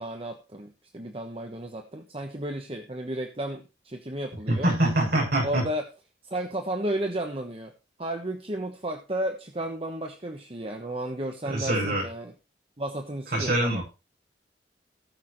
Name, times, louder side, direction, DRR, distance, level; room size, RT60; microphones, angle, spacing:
voice 1, 0.0-4.7 5.4-5.8 6.2-7.7 8.0-12.3 12.8-13.8, right 1 dB, 30° right, 4 dB, 1.2 m, -33 dB
voice 2, 4.5-5.7 11.4-12.1 13.3-13.8, right 1 dB, 60° right, -2 dB, 6.8 m, -24 dB
18.5 x 6.7 x 3.1 m, 0.30 s
head